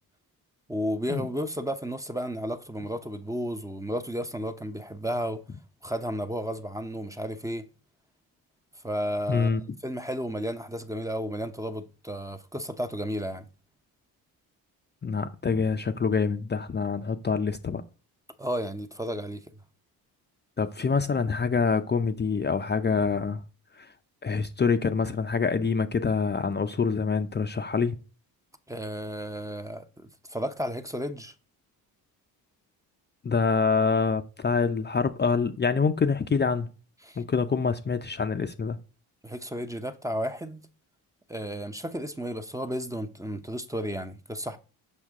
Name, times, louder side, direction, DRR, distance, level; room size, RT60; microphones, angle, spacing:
voice 1, 0.7-5.4 5.8-7.6 8.8-9.5 9.8-13.5 18.4-19.4 28.7-31.3 37.0-37.2 39.2-40.6 41.3-44.6, equal, 10° right, 0.7 m, -33 dB
voice 2, 9.3-9.6 15.0-17.8 20.6-23.4 23.8-23.9 24.2-28.0 33.2-36.7 37.2-38.8, left 5 dB, 25° left, 0.6 m, -26 dB
6.5 x 5.6 x 3.6 m
cardioid pair, 80°, 40 cm